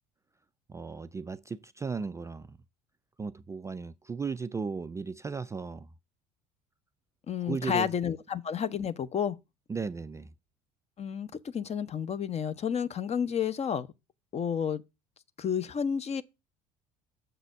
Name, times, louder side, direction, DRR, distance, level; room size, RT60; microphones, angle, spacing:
voice 1, 0.7-2.6 3.2-5.9 7.4-7.9 9.7-10.3, right 5 dB, 15° right, 0.3 m, -36 dB
voice 2, 7.3-9.4 11.0-13.9 14.3-14.8 15.4-16.2, left 8 dB, 30° left, 0.7 m, -31 dB
6.7 x 4.0 x 6.3 m
figure-of-eight pair, 65°, 20 cm